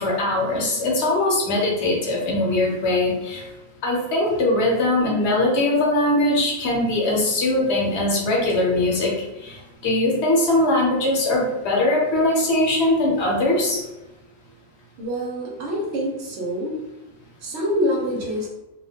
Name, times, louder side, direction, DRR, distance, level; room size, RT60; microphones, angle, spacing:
voice 1, 0.0-3.4 3.8-9.1 9.4-9.5 9.8-13.8, left 2 dB, 65° left, -3 dB, 0.9 m, -21 dB
voice 2, 15.0-16.8 17.4-18.5, equal, 70° right, -2 dB, 0.9 m, -26 dB
2.3 x 2.2 x 2.7 m, 0.98 s
omnidirectional pair, 1.3 m